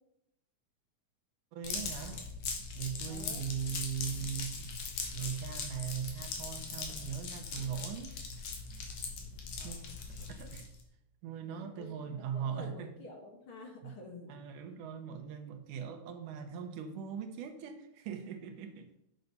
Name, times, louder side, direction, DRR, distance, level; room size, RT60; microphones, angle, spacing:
voice 1, 1.5-2.2 2.8-4.7 5.1-8.5 9.6-9.8 10.1-10.7 11.2-12.9 13.8-13.9 14.3-18.9, right 8 dB, 85° right, 6 dB, 2.5 m, -40 dB
sound 1, 1.6-10.8, left 4 dB, 65° left, 2.9 m, -40 dB
voice 2, 3.1-3.4 9.6-9.8 11.5-14.4, left 2 dB, 50° left, 2 dB, 2.0 m, -50 dB
9.4 x 7.1 x 5.4 m, 0.79 s
omnidirectional pair, 3.6 m